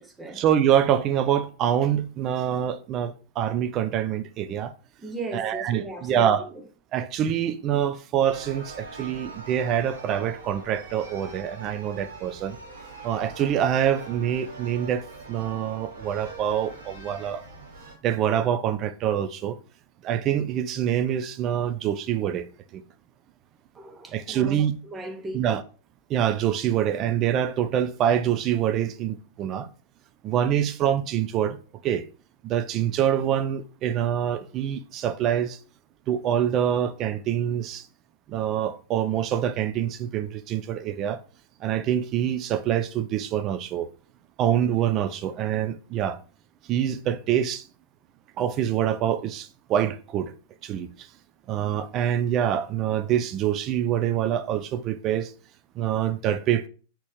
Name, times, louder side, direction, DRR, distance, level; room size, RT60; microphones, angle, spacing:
voice 1, 0.3-4.7 5.3-6.5 6.9-12.6 13.0-17.4 18.0-19.6 20.0-22.5 22.7-22.8 24.1-24.7 25.3-25.6 26.1-29.7 30.2-31.6 31.8-32.0 32.4-35.6 36.1-37.9 38.3-41.2 41.6-43.9 44.4-46.2 46.7-47.7 48.4-50.3 50.6-51.1 51.5-55.3 55.8-56.7, right 10 dB, 35° right, 0.3 m, -25 dB
voice 2, 5.0-6.5 23.7-25.5, right 2 dB, 15° right, 0.8 m, -37 dB
sound 1, 8.2-17.9, right 3 dB, 65° right, 1.4 m, -43 dB
4.1 x 2.9 x 3.5 m
figure-of-eight pair, 95°, 0 cm